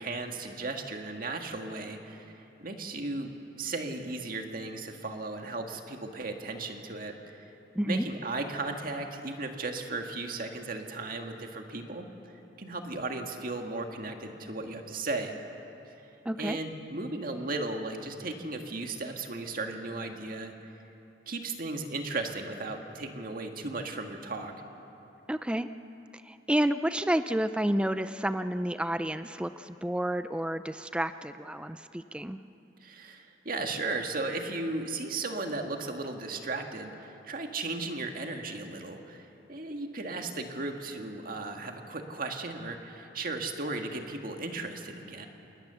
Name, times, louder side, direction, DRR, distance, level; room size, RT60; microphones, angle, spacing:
voice 1, 0.0-7.5 7.8-12.1 12.6-15.4 16.4-20.5 21.3-24.5 32.8-45.3, right 3 dB, 55° right, 4 dB, 1.9 m, -36 dB
voice 2, 16.3-16.6 25.3-25.7 26.2-32.4, right 1 dB, 5° right, 11 dB, 0.4 m, -30 dB
27.0 x 20.0 x 6.9 m, 2.9 s
head